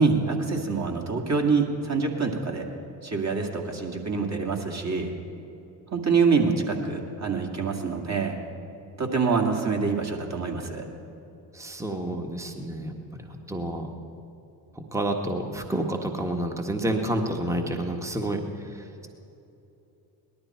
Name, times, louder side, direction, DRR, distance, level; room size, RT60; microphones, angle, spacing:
voice 1, 0.0-2.7 3.0-5.1 5.9-8.3 9.0-10.8, right 4 dB, 35° right, 2 dB, 2.3 m, -25 dB
voice 2, 11.5-12.9 13.5-13.9 14.9-18.4, right 1 dB, 5° right, 3 dB, 1.5 m, -29 dB
19.0 x 12.0 x 4.5 m, 2.8 s
hypercardioid pair, 65°, 47 cm